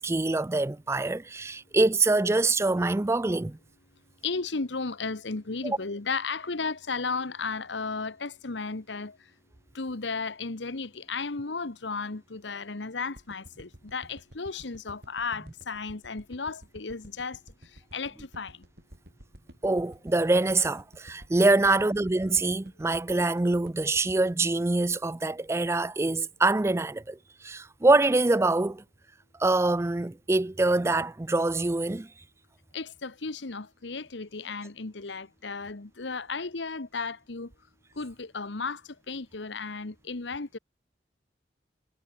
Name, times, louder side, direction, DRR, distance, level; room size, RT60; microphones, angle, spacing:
voice 1, 0.0-3.6 5.6-5.8 19.6-28.8 29.4-32.1, right 2 dB, 15° right, 0.4 m, -25 dB
voice 2, 4.2-9.2 9.7-17.4 17.7-18.6 32.7-37.5 37.9-40.6, left 4 dB, 75° left, 1.2 m, -34 dB
sound 1, 13.2-25.5 25.9-26.0, equal, 60° right, 4.7 m, -51 dB
head